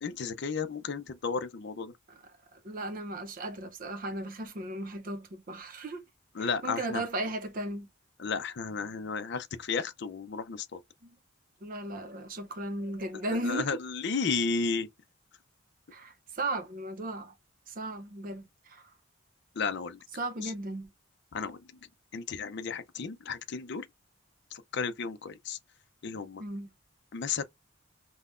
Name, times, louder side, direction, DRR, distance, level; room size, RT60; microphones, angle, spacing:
voice 1, 0.0-1.9 6.3-7.0 8.2-10.8 13.3-14.9 19.6-20.0 20.4-20.5 21.3-21.6 22.1-23.9 24.5-25.6 26.0-26.4 27.1-27.4, left 5 dB, 55° left, 0.5 m, -33 dB
voice 2, 2.1-6.0 6.4-7.9 11.0-11.1 11.6-13.8 15.9-17.3 17.7-18.9 20.2-20.9 26.4-26.7, right 2 dB, 45° right, 0.6 m, -36 dB
5.4 x 2.1 x 2.4 m
head